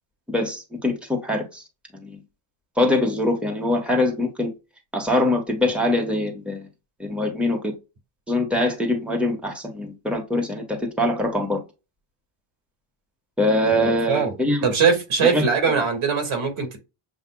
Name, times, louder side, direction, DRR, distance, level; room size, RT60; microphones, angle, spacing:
voice 1, 0.3-1.6 2.0-2.2 2.8-4.5 4.9-6.7 7.0-7.8 8.3-11.6 13.4-14.6 15.2-15.5, left 1 dB, ahead, 1.3 m, -23 dB
voice 2, 13.7-14.3 14.6-16.8, right 5 dB, 80° right, 2.0 m, -22 dB
7.3 x 2.6 x 2.3 m
cardioid pair, 115°, 48 cm